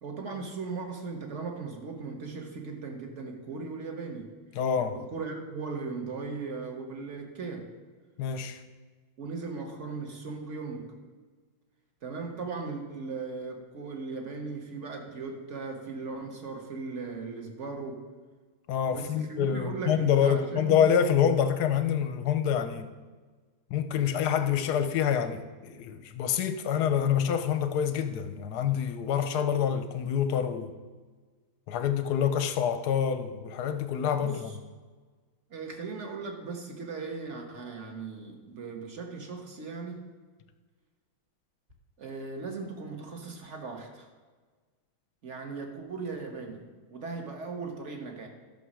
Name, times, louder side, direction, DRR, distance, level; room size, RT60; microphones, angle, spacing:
voice 1, 0.0-4.3 4.9-7.7 9.2-10.9 12.0-18.0 18.9-20.8 34.2-34.5 35.5-40.1 42.0-44.1 45.2-48.3, right 4 dB, 40° right, 1.4 m, -38 dB
voice 2, 4.6-5.0 8.2-8.6 18.7-22.9 23.7-30.7 31.7-34.5, left 8 dB, 65° left, 1.0 m, -27 dB
12.0 x 5.9 x 6.2 m
omnidirectional pair, 2.3 m